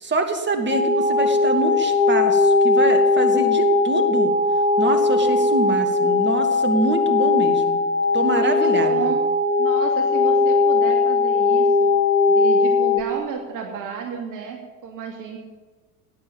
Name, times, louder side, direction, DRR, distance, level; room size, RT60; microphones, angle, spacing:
voice 1, 0.0-4.3 4.8-7.8 8.1-9.1, right 3 dB, 25° right, 6 dB, 2.4 m, -25 dB
sound 1, 0.7-13.0, left 3 dB, 80° left, 2.7 m, -19 dB
voice 2, 8.2-9.2 9.6-11.9 12.3-15.4, right 6 dB, 40° right, 1 dB, 2.6 m, -32 dB
17.5 x 10.0 x 7.2 m, 1.3 s
figure-of-eight pair, 70°, 47 cm